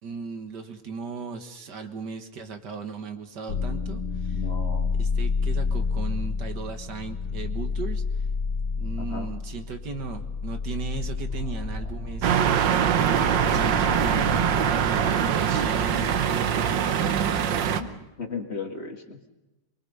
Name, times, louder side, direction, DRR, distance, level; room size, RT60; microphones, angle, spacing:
voice 1, 0.0-4.4 5.0-8.0 8.8-12.4 13.0-14.5 14.9-16.2 16.7-18.1, right 5 dB, 70° right, 6 dB, 2.1 m, -37 dB
sound 1, 3.5-16.2, left 5 dB, 85° left, 2.1 m, -30 dB
voice 2, 4.3-5.0 9.0-9.3 11.4-11.6 17.8-17.9 18.2-19.3, left 4 dB, 40° left, 3 dB, 2.1 m, -36 dB
sound 2, 10.9-16.0, right 4 dB, 35° right, 6.4 m, -40 dB
sound 3, 12.2-17.8, right 8 dB, 90° right, 1.6 m, -23 dB
24.5 x 23.0 x 5.5 m, 1.0 s
omnidirectional pair, 1.9 m